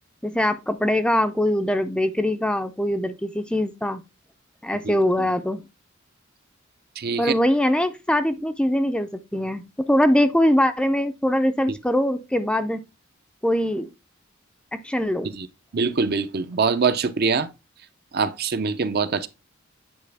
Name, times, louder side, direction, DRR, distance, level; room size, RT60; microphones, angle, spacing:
voice 1, 0.2-4.0 4.6-5.6 7.2-12.8 13.4-13.9 14.7-15.3, left 1 dB, 5° left, 0.5 m, -22 dB
voice 2, 4.8-5.3 7.0-7.3 15.3-15.5 15.7-17.5 18.1-19.3, right 5 dB, 50° right, 0.6 m, -24 dB
9.1 x 4.8 x 3.4 m
head